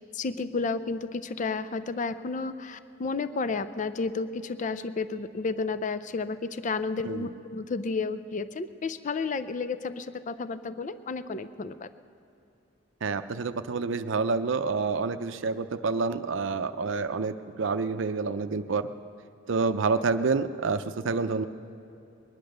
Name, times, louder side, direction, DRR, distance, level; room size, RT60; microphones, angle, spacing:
voice 1, 0.0-11.9, left 4 dB, 40° left, 13 dB, 0.4 m, -32 dB
voice 2, 13.0-18.9 19.5-21.5, right 4 dB, 70° right, 10 dB, 0.5 m, -28 dB
21.0 x 10.5 x 6.5 m, 2.7 s
head